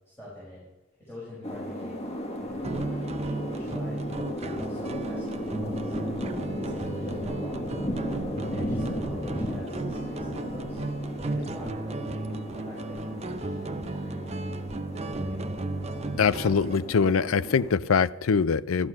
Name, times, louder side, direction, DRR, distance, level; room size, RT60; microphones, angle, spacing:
voice 1, 0.2-0.6 1.0-2.0 2.4-5.9 6.5-7.8 8.5-10.8 11.2-14.5 15.0-15.6, left 1 dB, 10° left, -8 dB, 5.5 m, -45 dB
sound 1, 1.4-17.7, equal, 30° left, 1.4 m, -35 dB
sound 2, 2.6-16.8, right 2 dB, 30° right, 0.6 m, -34 dB
voice 2, 16.2-18.9, left 5 dB, 85° left, 17 dB, 0.5 m, -23 dB
13.5 x 13.0 x 5.9 m, 1.0 s
head